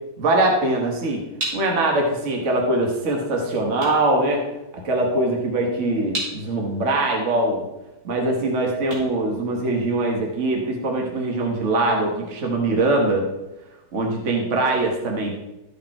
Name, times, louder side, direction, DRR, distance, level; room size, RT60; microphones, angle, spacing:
voice 1, 0.2-1.2 1.5-4.4 4.8-7.6 8.0-13.3 13.9-15.4, right 2 dB, 40° right, 0 dB, 1.6 m, -22 dB
sound 1, 1.4-10.2, right 1 dB, 80° right, 4.0 m, -37 dB
13.5 x 5.3 x 4.3 m, 0.95 s
omnidirectional pair, 2.1 m